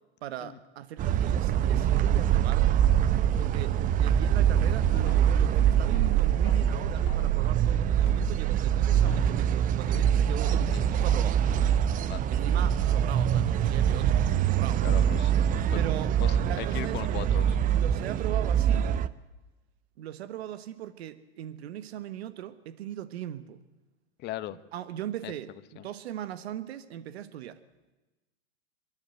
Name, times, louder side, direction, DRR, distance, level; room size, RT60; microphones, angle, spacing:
voice 1, 0.2-2.8 3.4-11.4 12.3-14.8 15.7-16.1 16.4-17.3 17.7-18.9 20.0-23.6 24.7-27.6, right 11 dB, 70° right, 1.3 m, -39 dB
sound 1, 1.0-19.1, right 10 dB, 25° right, 0.7 m, -24 dB
sound 2, 4.1-5.5 5.9-7.6 7.9-9.5 9.9-11.6 11.9-12.0, left 9 dB, 65° left, 2.8 m, -41 dB
voice 2, 14.8-17.6 24.2-24.6 25.2-25.3 25.8-25.9, left 13 dB, 30° left, 1.0 m, -39 dB
29.5 x 11.5 x 8.0 m
hypercardioid pair, 120°, 33 cm